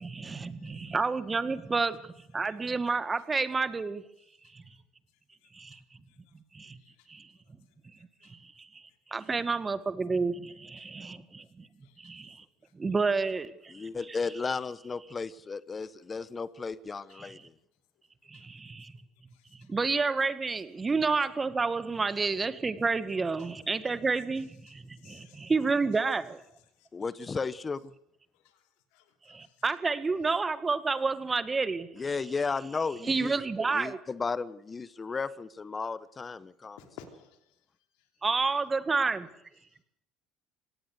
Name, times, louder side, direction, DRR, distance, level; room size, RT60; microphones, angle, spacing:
voice 1, 0.0-2.0 2.3-4.0 4.5-4.6 5.5-5.8 6.5-6.8 7.1-7.3 8.6-8.8 9.1-11.7 12.0-12.4 12.8-13.9 17.2-17.3 18.3-18.9 19.7-26.4 29.3-31.9 33.1-34.0 38.2-39.3, right 4 dB, 25° right, 1.9 m, -30 dB
voice 2, 10.8-11.1 11.8-12.1 18.3-18.5 19.3-19.7 25.0-25.5 26.8-26.9 28.4-28.6 28.9-29.6 36.8-37.4, left 8 dB, 75° left, 3.1 m, -55 dB
voice 3, 13.7-17.5 26.9-27.9 32.0-33.3 33.7-36.8, left 4 dB, 30° left, 1.0 m, -34 dB
24.5 x 18.0 x 6.6 m
hypercardioid pair, 70°, 0 cm